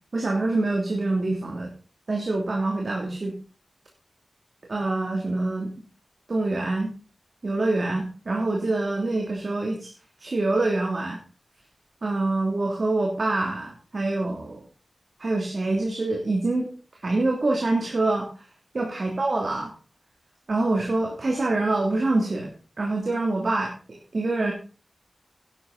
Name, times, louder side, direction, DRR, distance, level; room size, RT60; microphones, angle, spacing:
voice 1, 0.1-1.7 2.1-3.3 4.7-5.7 6.3-6.9 7.4-9.9 10.2-11.2 12.0-14.6 15.2-16.7 17.0-18.3 18.7-19.7 20.5-22.5 22.8-24.5, right 2 dB, 55° right, -1 dB, 3.0 m, -25 dB
11.5 x 10.5 x 4.2 m, 0.36 s
wide cardioid pair, 85°, 0 cm